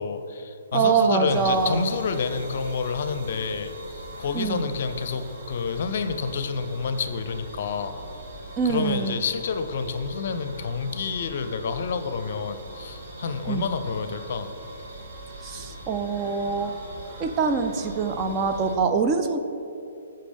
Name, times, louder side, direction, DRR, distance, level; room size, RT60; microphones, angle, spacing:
voice 1, 0.0-8.0 8.6-14.5, left 5 dB, 50° left, 10 dB, 0.6 m, -29 dB
voice 2, 0.7-1.9 4.3-4.7 8.6-9.2 13.5-13.7 15.4-16.7 17.2-19.4, right 5 dB, 25° right, 6 dB, 0.5 m, -24 dB
sound 1, 1.3-18.7, right 1 dB, 45° right, 1.7 m, -41 dB
14.0 x 5.6 x 3.5 m, 2.8 s
figure-of-eight pair, 125°, 0 cm